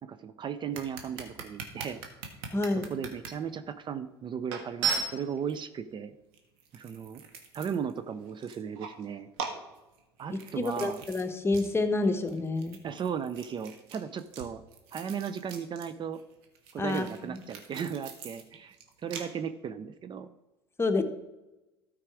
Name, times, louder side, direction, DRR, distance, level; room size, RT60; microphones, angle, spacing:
voice 1, 0.0-2.0 2.7-6.1 6.7-7.2 7.5-9.3 10.2-11.0 12.8-14.6 14.9-16.2 16.7-18.8 19.0-20.3, right 7 dB, 35° right, 11 dB, 0.6 m, -36 dB
sound 1, 0.7-3.3 3.9-4.0 4.5-5.6 6.3-8.0 8.3-9.0 9.4-11.2 11.5-11.7 12.0-15.9 16.1-19.2, right 5 dB, 70° right, 1.5 m, -38 dB
voice 2, 2.5-2.9 10.3-12.8 16.8-17.4 20.8-21.0, left 2 dB, 20° left, 7 dB, 1.1 m, -29 dB
13.0 x 4.8 x 4.8 m, 1.0 s
hypercardioid pair, 70°, 13 cm